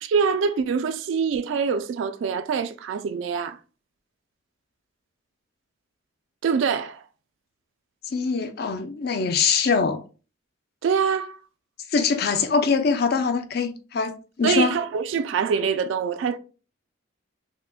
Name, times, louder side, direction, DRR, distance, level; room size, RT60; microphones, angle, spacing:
voice 1, 0.0-3.6 6.4-7.0 10.8-11.4 14.4-16.4, right 6 dB, 70° right, 0.3 m, -24 dB
voice 2, 8.1-10.0 11.9-14.8, left 5 dB, 50° left, 0.5 m, -23 dB
5.6 x 2.1 x 2.3 m
head